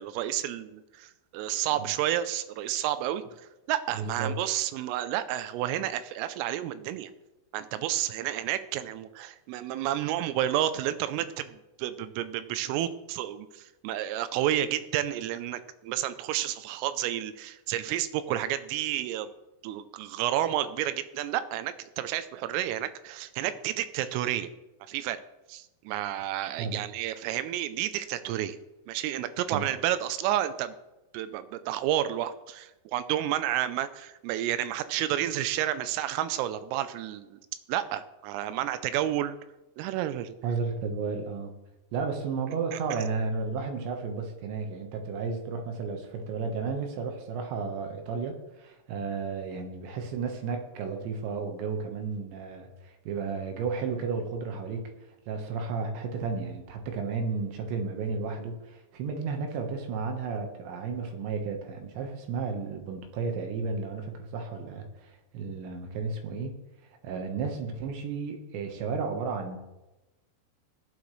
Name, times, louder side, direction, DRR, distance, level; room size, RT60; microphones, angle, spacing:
voice 1, 0.0-3.2 3.7-7.1 7.5-19.3 19.6-24.5 24.9-25.2 25.5-28.6 28.9-30.7 31.1-37.4 37.7-39.4 39.8-40.3 42.7-42.8, right 12 dB, 85° right, 12 dB, 3.4 m, -30 dB
voice 2, 3.9-4.3 26.6-26.8 29.5-29.7 40.4-41.5 41.9-54.9 55.3-66.5 67.0-69.6, right 5 dB, 70° right, 4 dB, 3.3 m, -33 dB
16.0 x 11.0 x 3.2 m, 1.0 s
omnidirectional pair, 5.8 m